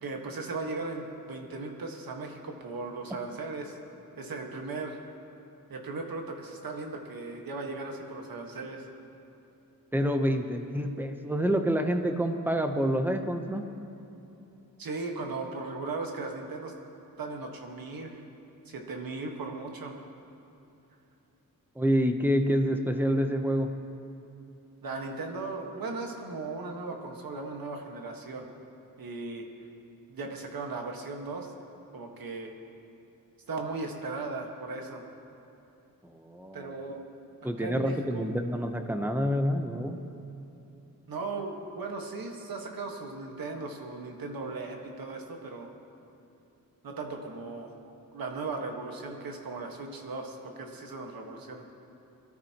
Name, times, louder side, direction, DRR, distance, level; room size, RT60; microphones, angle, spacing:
voice 1, 0.0-3.8 4.2-5.0 5.7-8.9 14.8-16.7 17.2-18.2 18.6-19.9 24.8-28.5 29.0-29.5 30.1-31.5 31.9-32.5 33.5-35.0 36.5-37.0 37.6-38.3 41.1-45.7 46.8-47.7 48.1-51.6, right 3 dB, 70° right, 2 dB, 1.6 m, -37 dB
voice 2, 9.9-13.6 21.8-23.7 36.0-36.7 37.4-40.0, equal, 5° right, 5 dB, 0.7 m, -27 dB
22.0 x 14.0 x 3.0 m, 2.9 s
wide cardioid pair, 160°, 36 cm